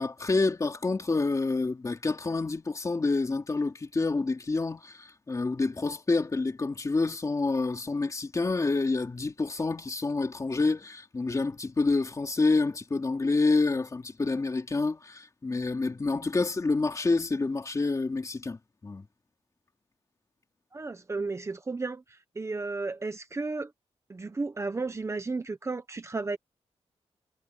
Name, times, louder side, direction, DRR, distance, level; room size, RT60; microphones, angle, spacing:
voice 1, 0.0-19.0, left 3 dB, 30° left, 2.9 m, -28 dB
voice 2, 20.7-23.7 24.1-26.4, right 3 dB, 25° right, 1.0 m, -33 dB
wide cardioid pair, 155°, 11 cm